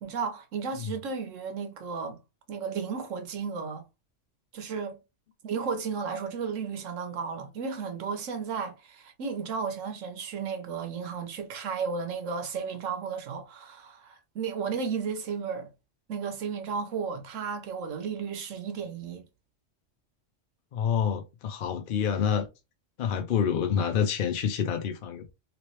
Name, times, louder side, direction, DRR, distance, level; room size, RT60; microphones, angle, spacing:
voice 1, 0.0-2.2 2.5-3.8 4.5-5.0 5.4-15.7 16.1-19.2, right 5 dB, 85° right, 1.2 m, -34 dB
voice 2, 20.7-22.5 23.0-25.3, left 7 dB, 60° left, 0.6 m, -27 dB
3.0 x 3.0 x 3.1 m
omnidirectional pair, 1.3 m